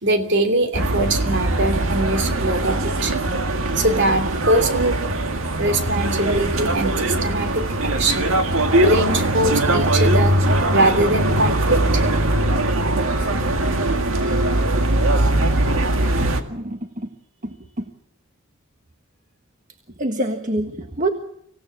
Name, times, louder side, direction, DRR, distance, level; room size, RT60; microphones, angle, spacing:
voice 1, 0.0-3.3 3.7-5.0 5.6-8.4 8.8-12.0, right 1 dB, 55° right, 7 dB, 2.9 m, -22 dB
sound 1, 0.7-16.4, right 1 dB, 70° right, 2.0 m, -20 dB
voice 2, 14.1-14.5 16.1-17.1 17.4-17.8 20.0-21.1, right 1 dB, 35° right, 5 dB, 1.5 m, -27 dB
25.5 x 16.5 x 7.5 m, 0.71 s
head